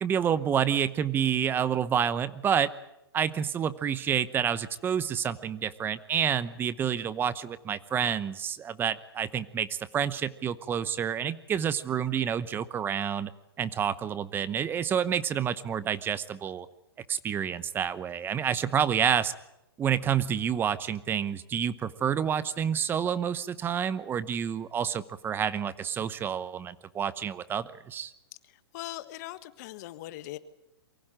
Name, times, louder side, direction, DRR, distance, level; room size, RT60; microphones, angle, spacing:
voice 1, 0.0-2.7 3.1-13.3 13.6-16.7 17.1-19.3 19.8-28.1, right 8 dB, 15° right, 16 dB, 0.9 m, -29 dB
voice 2, 28.7-30.4, left 16 dB, 45° left, 14 dB, 1.5 m, -40 dB
23.5 x 16.0 x 8.9 m, 0.89 s
hypercardioid pair, 135°, 13 cm